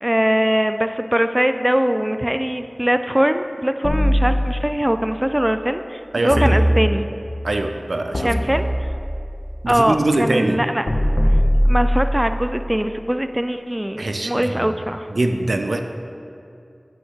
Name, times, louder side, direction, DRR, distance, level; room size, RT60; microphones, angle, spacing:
voice 1, 0.0-7.1 8.2-8.9 9.7-10.9 11.6-15.1, equal, 15° right, 9 dB, 0.3 m, -21 dB
sound 1, 3.8-4.9 6.3-7.3 8.1-9.2 10.9-12.3, equal, 50° left, 1.2 m, -19 dB
voice 2, 6.1-6.6 7.4-8.3 9.6-10.6 14.0-14.7 15.1-15.8, right 2 dB, 80° right, 6 dB, 0.5 m, -22 dB
9.1 x 7.2 x 3.7 m, 2.6 s
wide cardioid pair, 45°, 0 cm